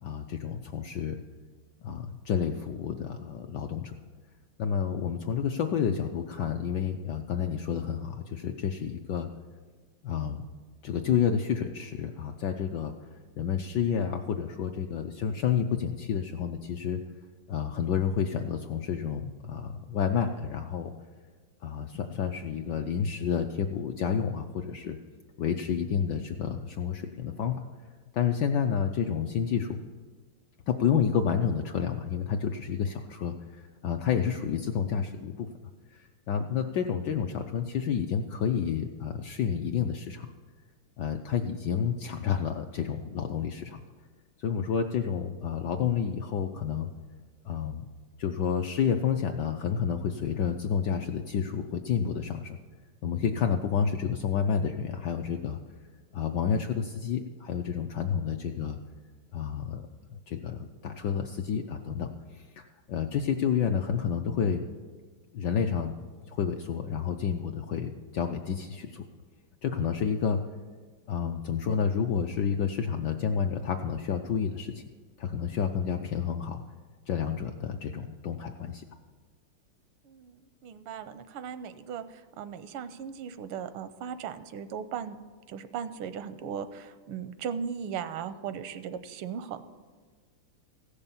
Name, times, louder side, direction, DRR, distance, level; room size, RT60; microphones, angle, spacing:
voice 1, 0.0-1.2 1.8-3.9 4.6-9.3 10.0-10.5 10.8-17.0 17.5-20.9 21.6-25.0 25.4-27.5 28.1-29.8 30.7-35.5 35.9-40.3 41.0-43.8 44.4-46.9 47.4-47.9 48.2-52.6 53.0-55.6 56.1-58.8 59.3-64.6 65.3-69.0 69.6-70.4 71.1-74.8 75.2-76.6 77.1-78.8, left 7 dB, 75° left, 5 dB, 1.0 m, -30 dB
voice 2, 80.0-85.2 85.5-89.6, right 7 dB, 85° right, 12 dB, 1.5 m, -37 dB
15.5 x 6.8 x 7.2 m, 1.5 s
omnidirectional pair, 2.4 m